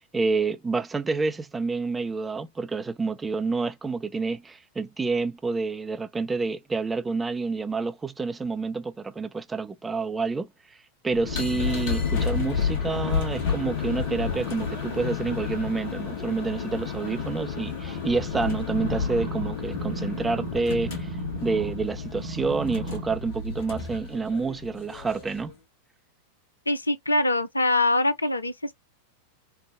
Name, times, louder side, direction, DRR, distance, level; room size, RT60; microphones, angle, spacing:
voice 1, 0.0-10.5 11.0-25.5, right 4 dB, 15° right, 0.5 m, -28 dB
sound 1, 11.1-25.5, left 6 dB, 50° left, 1.2 m, -31 dB
sound 2, 18.7-21.8 22.2-23.2 23.7-23.8, right 3 dB, 45° right, 0.8 m, -35 dB
voice 2, 26.7-28.7, left 2 dB, 80° left, 0.5 m, -23 dB
3.4 x 2.1 x 3.3 m
figure-of-eight pair, 90°, 0 cm